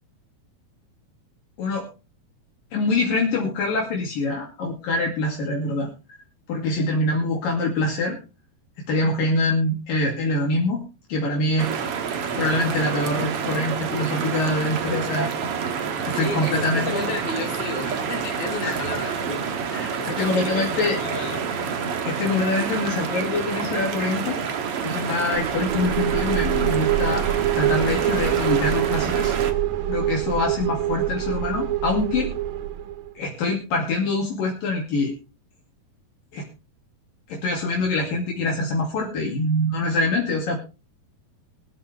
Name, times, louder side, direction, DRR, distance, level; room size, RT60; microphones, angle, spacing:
voice 1, 2.7-5.9 6.5-8.2 8.9-10.8 11.1-11.7 12.4-15.3 16.0-16.8 18.6-18.8 19.7-21.0 22.0-24.4 24.8-27.3 27.6-29.4 29.9-32.3 33.2-35.2 36.3-36.5 37.3-40.6, left 2 dB, 65° left, 0 dB, 4.1 m, -24 dB
sound 1, 11.6-29.5, right 6 dB, 55° right, 1.7 m, -28 dB
voice 2, 16.1-19.6 20.0-21.7, left 3 dB, 40° left, 3 dB, 4.4 m, -33 dB
sound 2, 25.3-33.1, right 12 dB, 75° right, 2.8 m, -25 dB
23.5 x 8.6 x 3.4 m, 0.31 s
omnidirectional pair, 4.5 m